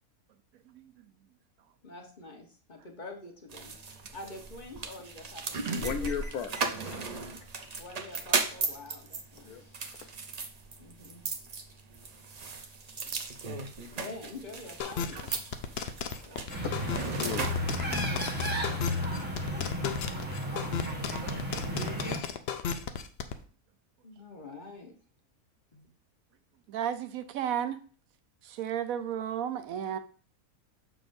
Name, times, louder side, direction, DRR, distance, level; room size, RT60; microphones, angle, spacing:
voice 1, 1.8-3.7 4.1-6.1 7.8-9.6 10.8-11.2 13.9-15.3 16.3-16.5 18.9-19.4 24.0-24.9 25.7-25.9, left 2 dB, 35° left, 3 dB, 1.2 m, -46 dB
sound 1, 3.5-18.4, right 4 dB, 45° right, 0.5 m, -37 dB
voice 2, 5.8-6.6 6.8-7.3 9.4-9.6 9.9-10.1 16.6-18.2, left 7 dB, 85° left, 8 dB, 1.3 m, -38 dB
sound 2, 14.8-23.3, left 7 dB, 60° left, 0.7 m, -34 dB
sound 3, 16.5-22.2, left 1 dB, 10° right, 1.0 m, -33 dB
voice 3, 26.7-27.8 28.4-30.0, right 9 dB, 75° right, 11 dB, 1.0 m, -33 dB
6.9 x 6.1 x 2.6 m, 0.41 s
omnidirectional pair, 1.5 m